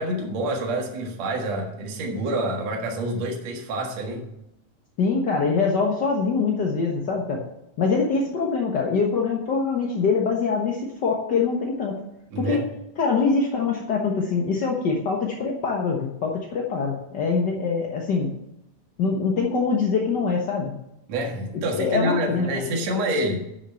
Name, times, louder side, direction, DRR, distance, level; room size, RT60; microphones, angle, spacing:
voice 1, 0.0-4.2 12.3-12.6 21.1-23.4, right 1 dB, 60° right, 1 dB, 2.7 m, -27 dB
voice 2, 5.0-7.4 7.8-12.0 12.4-12.6 13.0-18.3 19.0-20.7 21.7-22.7, left 4 dB, 55° left, -1 dB, 1.2 m, -24 dB
9.9 x 6.9 x 7.5 m, 0.83 s
omnidirectional pair, 3.6 m